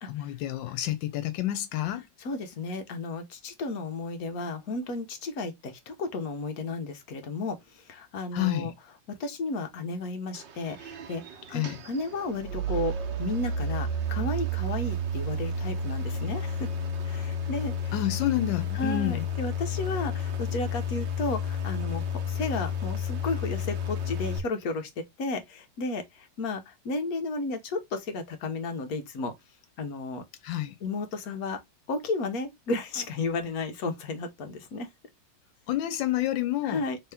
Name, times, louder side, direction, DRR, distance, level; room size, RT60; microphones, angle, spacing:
voice 1, 0.1-2.0 8.3-8.7 11.5-11.8 17.9-19.3 30.4-30.7 35.7-36.8, left 13 dB, 85° left, 1.3 m, -29 dB
voice 2, 2.2-7.6 7.9-8.7 9.2-11.2 11.5-16.7 17.0-17.9 18.7-24.9 25.2-29.3 29.8-30.2 30.8-31.6 31.9-34.9 36.6-37.0, left 3 dB, 60° left, 1.2 m, -33 dB
sound 1, 10.3-24.4, left 2 dB, 85° right, 1.6 m, -31 dB
3.7 x 2.9 x 3.4 m
omnidirectional pair, 2.0 m